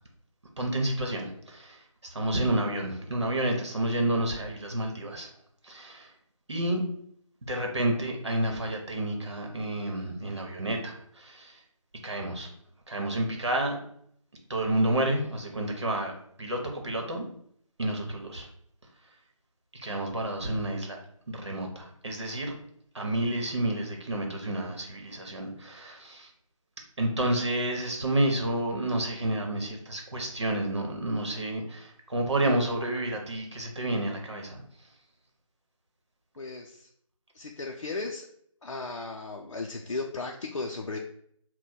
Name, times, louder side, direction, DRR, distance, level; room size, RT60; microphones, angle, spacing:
voice 1, 0.6-5.3 5.6-6.1 6.5-6.8 7.4-11.6 12.0-12.5 12.9-13.8 14.5-16.1 16.4-17.3 17.8-18.5 19.7-21.0 21.3-22.6 22.9-26.3 27.0-34.6, right 1 dB, 55° right, 1 dB, 1.1 m, -30 dB
voice 2, 36.4-36.9 37.3-38.3 38.6-41.0, left 3 dB, 60° left, 1 dB, 0.5 m, -35 dB
3.6 x 2.2 x 4.3 m, 0.66 s
figure-of-eight pair, 165°, 17 cm